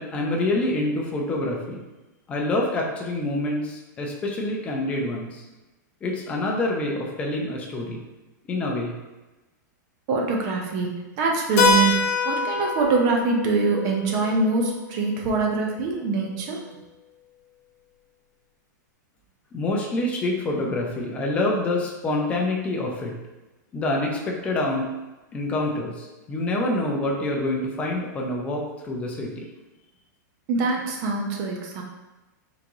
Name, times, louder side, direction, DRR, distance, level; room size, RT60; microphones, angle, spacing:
voice 1, 0.0-1.8 2.3-5.4 6.0-8.0 8.4-9.0 19.5-23.2 23.7-24.9 25.3-29.5, left 2 dB, 10° left, -1 dB, 0.5 m, -26 dB
voice 2, 10.1-16.6 30.5-31.8, right 3 dB, 30° right, 0 dB, 0.7 m, -24 dB
Keyboard (musical), 11.6-16.0, left 3 dB, 45° left, 0.8 m, -26 dB
3.8 x 3.5 x 3.0 m, 1.1 s
supercardioid pair, 165°, 10 cm